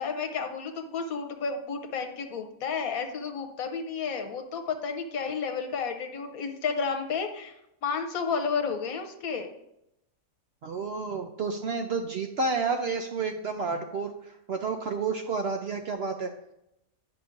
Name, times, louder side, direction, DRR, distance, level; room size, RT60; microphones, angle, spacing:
voice 1, 0.0-7.5 7.8-9.5, left 5 dB, 75° left, 5 dB, 1.2 m, -31 dB
voice 2, 10.6-16.3, right 4 dB, 65° right, 4 dB, 0.6 m, -30 dB
10.0 x 5.9 x 2.5 m, 0.83 s
omnidirectional pair, 1.5 m